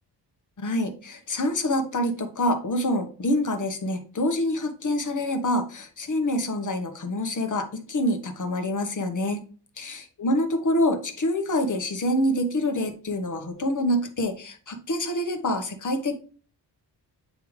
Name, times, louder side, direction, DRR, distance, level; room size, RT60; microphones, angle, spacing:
voice 1, 0.6-9.4 9.8-16.1, left 1 dB, 45° left, 6 dB, 1.3 m, -26 dB
8.7 x 3.5 x 3.2 m, 0.39 s
cardioid pair, 75°, 43 cm